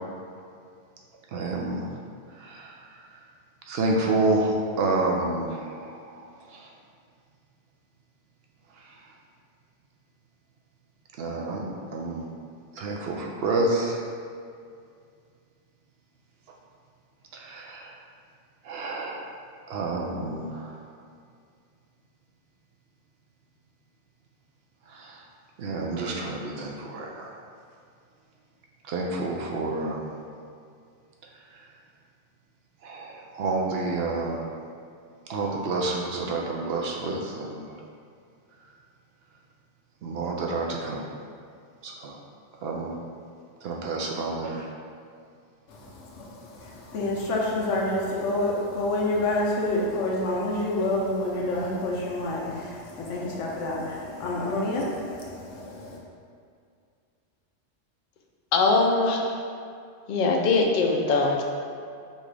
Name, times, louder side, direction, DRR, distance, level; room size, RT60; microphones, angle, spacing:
voice 1, 1.3-2.0 2.3-3.2 3.7-6.7 8.8-9.0 11.2-12.3 12.7-14.0 17.3-18.0 18.6-19.3 19.7-20.9 24.9-25.2 25.6-27.5 28.8-30.2 31.5-31.6 32.8-34.4 35.3-37.7 40.0-41.1 41.8-42.2 42.6-43.0 43.6-44.7, right 2 dB, 65° right, -1 dB, 0.7 m, -29 dB
voice 2, 45.7-56.0, left 2 dB, 90° left, -3 dB, 1.1 m, -28 dB
voice 3, 58.5-59.3 60.1-61.4, left 3 dB, 55° left, 1 dB, 0.5 m, -22 dB
5.2 x 2.4 x 3.3 m, 2.3 s
omnidirectional pair, 1.2 m